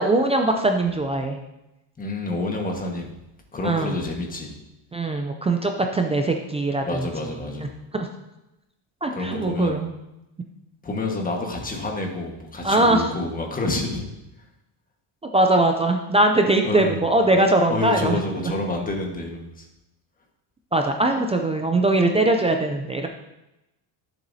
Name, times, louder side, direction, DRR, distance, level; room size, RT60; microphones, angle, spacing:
voice 1, 0.0-1.4 3.6-4.0 4.9-7.1 7.6-7.7 7.9-8.1 9.0-9.9 12.6-13.1 15.3-18.2 20.7-23.1, right 2 dB, 15° right, 4 dB, 0.3 m, -21 dB
voice 2, 2.0-3.1 3.5-4.6 6.8-7.7 9.1-9.8 10.8-14.0 16.6-17.0 17.3-17.4 17.7-19.6, left 2 dB, 15° left, 2 dB, 1.4 m, -28 dB
11.5 x 7.2 x 2.7 m, 0.92 s
cardioid pair, 135°, 50 cm